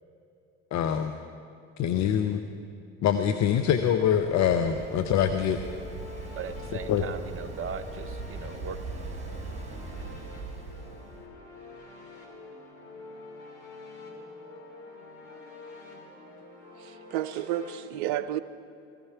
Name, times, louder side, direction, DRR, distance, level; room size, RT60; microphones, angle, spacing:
voice 1, 0.7-1.1 1.8-2.4 3.0-5.6 6.9-7.1, left 8 dB, 50° left, 0.8 m, -24 dB
sound 1, 3.0-17.8, left 3 dB, 70° left, 3.2 m, -47 dB
Waves surf, 3.6-11.3, right 3 dB, 20° right, 3.8 m, -40 dB
voice 2, 6.4-8.8, right 7 dB, 35° right, 1.0 m, -38 dB
voice 3, 16.8-18.4, right 12 dB, 70° right, 0.8 m, -31 dB
17.5 x 15.5 x 4.6 m
hypercardioid pair, 70°, 37 cm